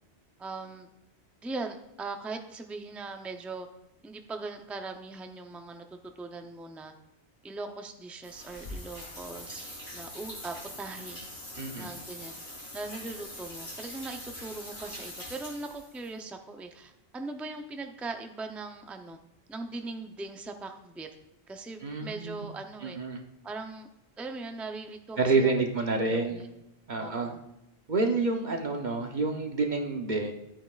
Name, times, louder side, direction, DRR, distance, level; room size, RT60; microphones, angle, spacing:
voice 1, 0.4-0.9 1.4-3.7 4.0-6.9 7.4-11.2 11.8-12.3 12.7-19.2 19.5-21.1 21.5-23.0 23.4-23.9 24.2-25.5 26.0-26.5 27.0-27.4, right 3 dB, ahead, 5 dB, 0.4 m, -40 dB
sound 1, 8.2-16.1, left 1 dB, 85° left, 3.8 m, -43 dB
voice 2, 11.6-11.9 21.8-22.5 22.8-23.2 25.2-26.4 26.9-27.3 27.9-30.3, right 3 dB, 45° right, 3 dB, 1.0 m, -28 dB
13.0 x 8.9 x 2.4 m, 0.90 s
omnidirectional pair, 1.1 m